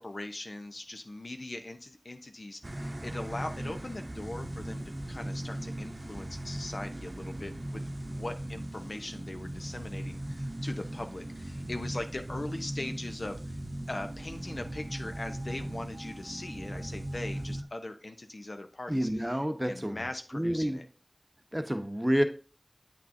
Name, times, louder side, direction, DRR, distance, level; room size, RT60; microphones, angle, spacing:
voice 1, 0.0-7.8 8.1-13.6 13.9-20.8, left 2 dB, 75° left, 6 dB, 0.8 m, -40 dB
sound 1, 2.6-17.6, right 1 dB, 50° right, 0.7 m, -38 dB
voice 2, 18.9-20.0 20.3-20.8 21.5-22.2, equal, 10° right, 7 dB, 0.9 m, -28 dB
8.7 x 6.0 x 2.7 m, 0.37 s
wide cardioid pair, 45°, 0 cm